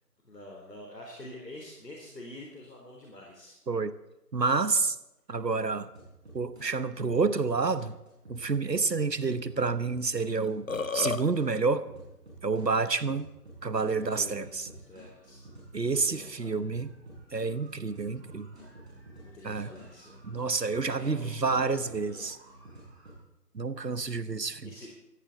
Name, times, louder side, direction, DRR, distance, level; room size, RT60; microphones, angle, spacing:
voice 1, 0.2-3.6 14.0-15.5 15.9-16.6 19.2-20.2 20.5-22.3 24.6-24.9, left 1 dB, 80° left, -2 dB, 3.9 m, -47 dB
voice 2, 4.3-5.0 5.3-5.9 6.3-8.0 8.3-10.7 10.9-11.9 12.4-13.3 13.6-14.6 15.7-16.9 17.3-18.5 19.4-19.7 20.2-22.4 23.5-24.7, right 4 dB, 85° right, 14 dB, 1.2 m, -29 dB
sound 1, 5.9-6.6 7.0-11.4 11.8-23.1, right 1 dB, ahead, 1.3 m, -50 dB
Burping eructation, 10.4-11.2, left 4 dB, 55° left, 0.9 m, -31 dB
18.0 x 14.5 x 4.1 m, 0.94 s
figure-of-eight pair, 160°, 48 cm